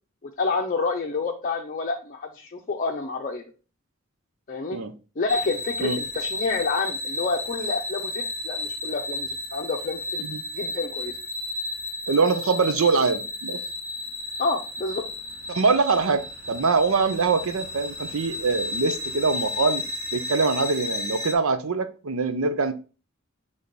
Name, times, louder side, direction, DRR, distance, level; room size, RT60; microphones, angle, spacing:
voice 1, 0.2-3.4 4.5-4.8 5.2-10.3 10.5-11.1 14.4-15.0, left 3 dB, 40° left, 0.6 m, -28 dB
sound 1, 5.3-21.3, left 2 dB, 45° right, 1.4 m, -33 dB
voice 2, 12.1-13.6 15.5-19.8 20.1-22.7, right 4 dB, 75° right, 0.7 m, -23 dB
6.9 x 3.5 x 4.0 m
head